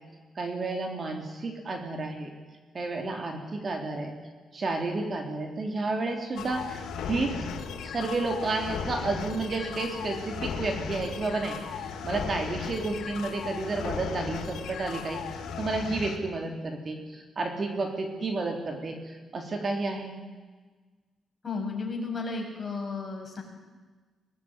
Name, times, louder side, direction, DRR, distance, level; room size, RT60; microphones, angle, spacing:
voice 1, 0.4-2.3 2.7-4.1 4.5-7.5 7.8-11.6 12.0-15.2 15.6-20.2, right 3 dB, 40° right, 4 dB, 3.5 m, -31 dB
sound 1, 6.4-16.2, left 6 dB, 90° left, 3.2 m, -36 dB
voice 2, 21.4-23.4, left 4 dB, 30° left, 1 dB, 6.7 m, -33 dB
23.5 x 18.5 x 9.8 m, 1.3 s
cardioid pair, 120°, 0 cm